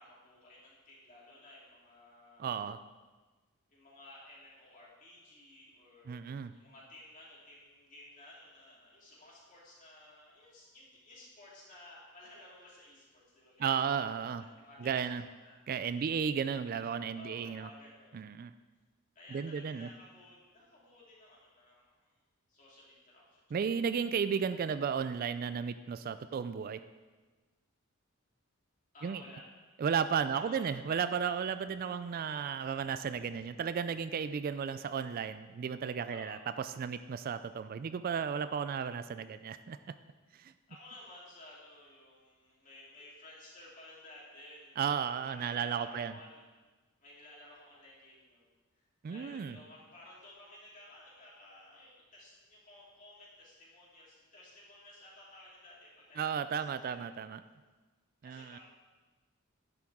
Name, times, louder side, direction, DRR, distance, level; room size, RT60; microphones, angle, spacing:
voice 1, 0.0-2.4 3.7-13.7 14.2-14.3 14.6-15.6 17.1-18.2 19.2-22.2 22.5-23.9 28.9-29.4 30.3-30.7 36.1-36.4 40.7-44.7 45.3-46.5 47.0-57.1 58.2-58.6, left 1 dB, 40° left, -6 dB, 3.5 m, -55 dB
voice 2, 2.4-2.8 6.1-6.5 13.6-14.4 14.8-15.2 15.7-17.7 18.1-18.5 19.3-19.9 23.5-26.8 29.0-29.2 29.8-39.8 40.3-40.5 44.8-46.1 49.0-49.6 56.2-57.4 58.2-58.6, right 7 dB, 40° right, 12 dB, 0.3 m, -34 dB
11.5 x 10.5 x 3.6 m, 1.3 s
head